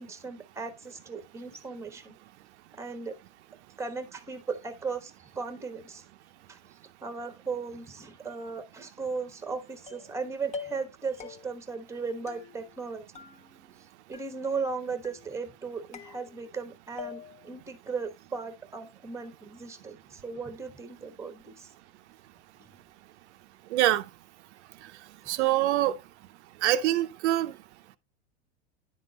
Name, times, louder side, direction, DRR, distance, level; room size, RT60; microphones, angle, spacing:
voice 1, 0.0-2.2 2.8-3.1 3.8-6.0 6.5-6.6 7.0-13.0 14.1-21.7 22.6-22.7 25.4-25.5, right 4 dB, 10° right, 1.0 m, -37 dB
sound 1, 9.9-10.2 10.5-10.9 11.2-11.7 12.3-12.9 13.1-13.8 14.1-14.7 15.0-15.6 15.9-16.6 17.0-17.5, left 6 dB, 20° left, 0.6 m, -44 dB
voice 2, 23.7-24.0 25.3-25.9 26.6-27.5, right 14 dB, 75° right, 0.6 m, -24 dB
10.0 x 3.7 x 3.9 m
supercardioid pair, 130°, 34 cm